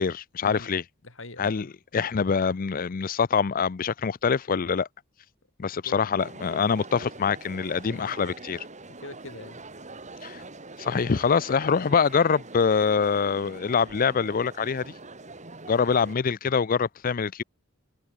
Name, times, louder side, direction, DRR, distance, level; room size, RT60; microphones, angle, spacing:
voice 1, 0.0-0.8 1.4-1.7 1.9-4.9 5.6-8.6 10.2-10.4 10.8-14.9 15.7-17.4, left 6 dB, 40° left, 0.5 m, -24 dB
voice 2, 1.0-1.7 5.8-6.1 7.9-8.2 8.9-9.6, left 2 dB, 65° left, 8.0 m, -43 dB
Crowd, 6.2-16.1, right 3 dB, 35° right, 5.9 m, -44 dB
head